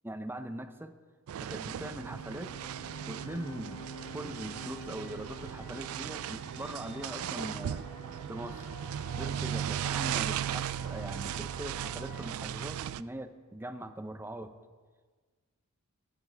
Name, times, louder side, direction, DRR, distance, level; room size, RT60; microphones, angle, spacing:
voice 1, 0.0-1.0 1.4-2.6 3.1-3.9 4.1-7.8 8.3-8.8 9.2-14.6, right 1 dB, 10° right, 8 dB, 0.6 m, -41 dB
sound 1, 1.3-13.0, right 10 dB, 70° right, 0.3 m, -37 dB
sound 2, 1.7-8.4, right 3 dB, 70° left, 0.9 m, -50 dB
sound 3, 2.5-12.3, left 2 dB, 25° left, 1.5 m, -51 dB
14.0 x 13.0 x 4.6 m, 1.5 s
head